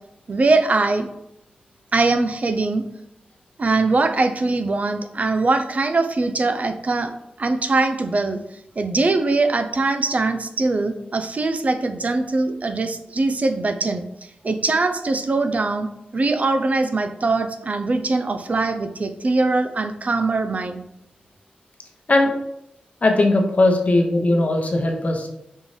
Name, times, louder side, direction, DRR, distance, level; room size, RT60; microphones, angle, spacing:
voice 1, 0.3-1.1 1.9-2.8 3.6-8.4 8.8-14.0 14.4-20.8, right 3 dB, 50° right, 8 dB, 0.4 m, -22 dB
voice 2, 23.0-25.3, left 2 dB, 50° left, 3 dB, 0.9 m, -18 dB
5.4 x 2.6 x 3.1 m, 0.81 s
cardioid pair, 50°, 3 cm